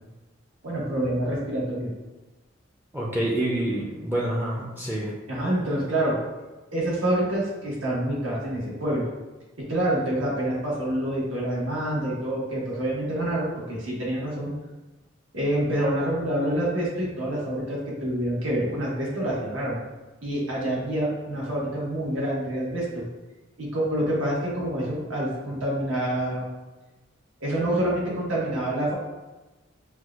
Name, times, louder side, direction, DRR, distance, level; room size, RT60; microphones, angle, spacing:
voice 1, 0.6-1.9 5.3-6.2 6.7-9.1 9.6-14.5 15.3-19.8 20.2-23.0 23.6-26.4 27.4-28.9, right 1 dB, 75° right, -6 dB, 1.3 m, -27 dB
voice 2, 2.9-5.1, right 1 dB, 10° right, -5 dB, 0.5 m, -27 dB
6.0 x 2.3 x 2.4 m, 1.1 s
head